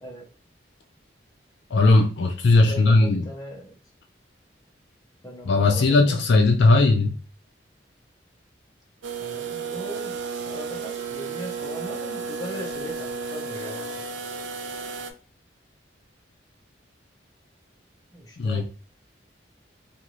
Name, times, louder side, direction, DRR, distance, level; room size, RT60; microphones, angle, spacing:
voice 1, 1.7-3.2 5.5-7.2 18.4-18.7, left 2 dB, 65° left, 0.4 m, -18 dB
voice 2, 2.5-3.8 5.2-6.2 9.2-13.8 18.1-18.7, equal, 20° left, 0.7 m, -39 dB
sound 1, 9.0-15.1, right 5 dB, 75° right, 0.4 m, -33 dB
2.6 x 2.4 x 3.0 m
head